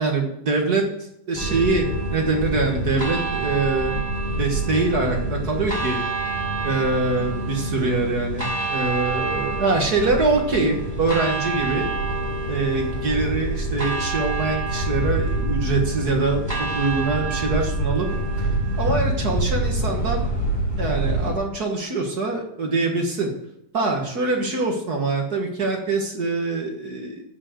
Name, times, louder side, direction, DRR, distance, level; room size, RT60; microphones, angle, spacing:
voice 1, 0.0-0.8 1.3-3.9 4.4-6.0 6.6-11.9 12.5-16.4 16.7-18.1 18.4-18.5 18.8-20.3 20.8-23.3 23.7-27.2, right 3 dB, 50° right, 2 dB, 1.1 m, -24 dB
sound 1, 1.3-21.3, right 2 dB, 5° right, 5.3 m, -26 dB
10.0 x 7.4 x 8.1 m, 0.77 s
omnidirectional pair, 4.0 m